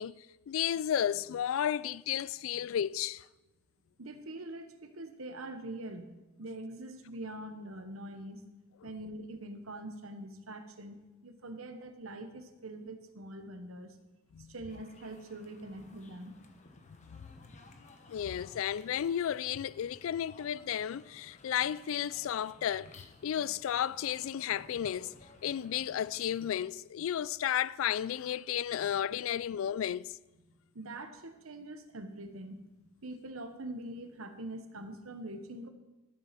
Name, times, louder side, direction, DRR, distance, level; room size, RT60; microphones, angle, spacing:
voice 1, 0.0-3.2 14.3-14.5 17.1-17.2 18.1-25.1 25.4-30.1, left 10 dB, 70° left, 0.3 m, -33 dB
voice 2, 4.0-8.4 8.8-14.0 14.5-16.4 28.8-28.9 30.7-35.7, right 1 dB, 85° right, 1.1 m, -44 dB
sound 1, 14.7-26.6, left 2 dB, 35° left, 1.1 m, -57 dB
12.0 x 7.5 x 5.9 m
head